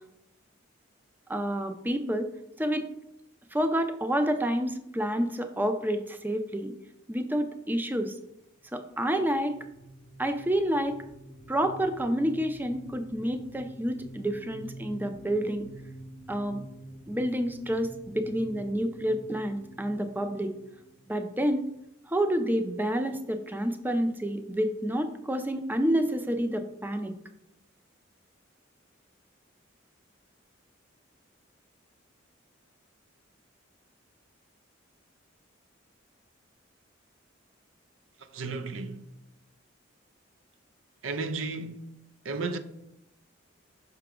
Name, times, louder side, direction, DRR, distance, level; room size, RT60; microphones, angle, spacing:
voice 1, 1.3-2.3 2.6-2.9 3.5-6.7 7.1-8.2 8.7-9.6 10.2-11.0 11.5-15.7 16.3-16.6 17.1-20.5 21.1-21.7 22.1-27.1, equal, 10° right, 0.4 m, -29 dB
sound 1, 9.2-21.6, right 1 dB, 55° left, 0.7 m, -47 dB
voice 2, 38.3-39.0 41.0-42.0 42.2-42.6, right 3 dB, 90° right, 0.6 m, -33 dB
5.8 x 5.7 x 3.7 m
head